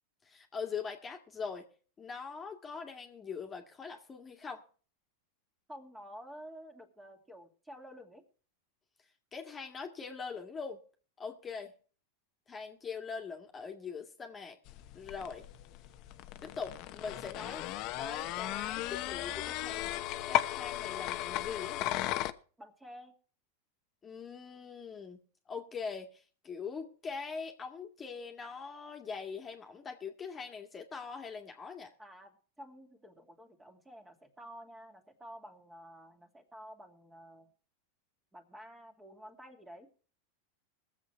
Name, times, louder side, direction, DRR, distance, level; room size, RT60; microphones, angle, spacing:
voice 1, 0.2-1.7 2.0-4.6 9.3-10.8 11.2-11.7 12.5-14.6 14.9-15.5 16.4-17.7 18.0-21.9 24.0-25.2 25.5-31.9, left 5 dB, 25° left, 3 dB, 2.0 m, -42 dB
voice 2, 5.7-8.2 22.6-23.1 32.0-37.5 38.3-39.9, equal, 10° right, 4 dB, 2.7 m, -51 dB
sound 1, 14.7-22.3, left 15 dB, 50° left, 1.0 m, -36 dB
20.5 x 7.7 x 4.6 m, 0.40 s
hypercardioid pair, 110°, 0 cm